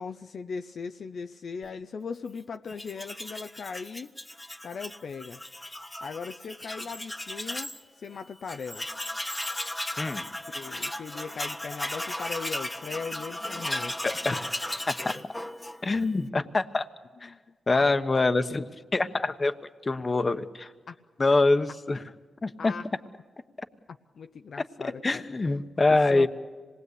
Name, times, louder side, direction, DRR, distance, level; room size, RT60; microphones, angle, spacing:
voice 1, 0.0-4.1 4.6-5.4 6.0-8.9 10.5-14.4 17.2-17.4 17.7-17.9 20.9-21.0 22.6-22.9 24.1-25.2 25.9-26.3, left 5 dB, 65° left, 7 dB, 0.7 m, -39 dB
Tools, 2.7-7.8 8.1-8.2 8.5-16.1, left 1 dB, 15° left, 1.3 m, -36 dB
voice 2, 15.8-16.9 17.2-17.3 17.7-18.6 18.9-19.5 19.8-20.7 21.2-22.0 22.4-22.7 25.0-26.3, left 3 dB, 35° left, 9 dB, 1.2 m, -24 dB
26.0 x 20.0 x 8.3 m, 1.5 s
cardioid pair, 70°, 0 cm